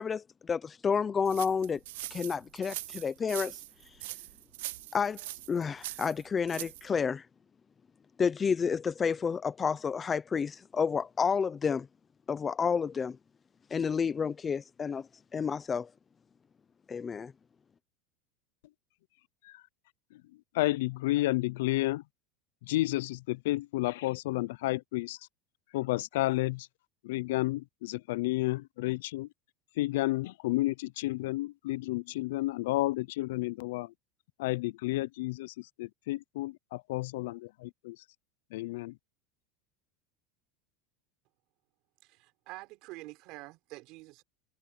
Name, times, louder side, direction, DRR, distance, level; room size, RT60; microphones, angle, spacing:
voice 1, 0.0-1.8 2.1-3.6 4.9-5.2 5.5-7.2 8.2-11.9 12.3-13.2 13.7-15.9 16.9-17.3, left 6 dB, 15° left, 0.5 m, -30 dB
sound 1, 1.2-6.9, right 18 dB, 75° right, 0.5 m, -42 dB
voice 2, 20.5-22.0 22.6-25.2 25.7-26.7 27.0-29.3 29.8-33.9 34.4-38.0 38.5-39.0, left 18 dB, 75° left, 0.4 m, -31 dB
voice 3, 42.0-44.2, right 21 dB, 45° right, 5.1 m, -47 dB
supercardioid pair, 170°, 0 cm